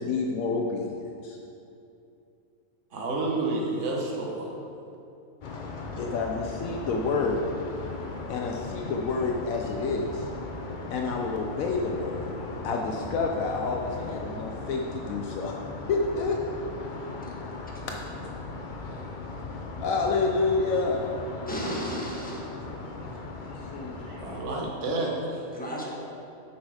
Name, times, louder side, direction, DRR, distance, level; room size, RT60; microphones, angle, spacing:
voice 1, 0.0-1.4 6.0-7.5 8.3-10.3 10.9-12.3 12.6-15.5 15.9-16.4 18.2-18.3 18.8-19.0 19.8-21.0 23.7-24.0, left 4 dB, 70° left, 1 dB, 1.0 m, -28 dB
voice 2, 2.9-4.5 24.0-25.5, right 2 dB, 55° right, -2 dB, 1.4 m, -30 dB
sound 1, 5.4-24.5, left 3 dB, 50° left, 0.6 m, -38 dB
voice 3, 21.5-22.5 25.5-26.0, equal, 5° left, -4 dB, 1.1 m, -34 dB
8.2 x 6.0 x 4.8 m, 2.7 s
omnidirectional pair, 1.5 m